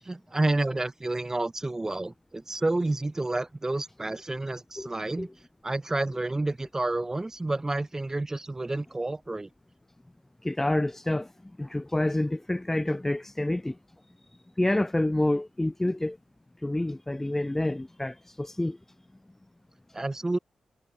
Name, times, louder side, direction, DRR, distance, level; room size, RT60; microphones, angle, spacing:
voice 1, 0.0-5.3 5.6-9.5 19.9-20.4, right 2 dB, 25° right, 3.0 m, -29 dB
voice 2, 10.4-11.3 11.6-13.8 14.6-16.2 16.6-18.8, left 1 dB, 15° left, 0.9 m, -28 dB
supercardioid pair, 50°, 2 cm